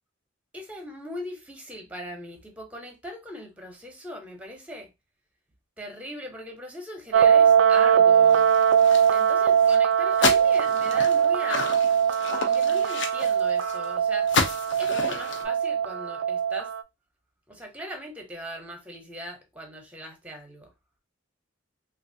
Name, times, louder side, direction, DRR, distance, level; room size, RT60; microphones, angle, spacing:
voice 1, 0.5-4.9 5.8-8.5 9.1-11.7 12.3-14.3 14.8-16.7 17.5-20.7, equal, 5° right, 0.7 m, -39 dB
sound 1, 7.1-16.8, right 8 dB, 85° right, 0.3 m, -21 dB
sound 2, 8.3-9.3 9.6-9.8 10.1-13.8 14.3-15.4, left 4 dB, 65° left, 0.6 m, -30 dB
3.1 x 2.4 x 2.6 m
head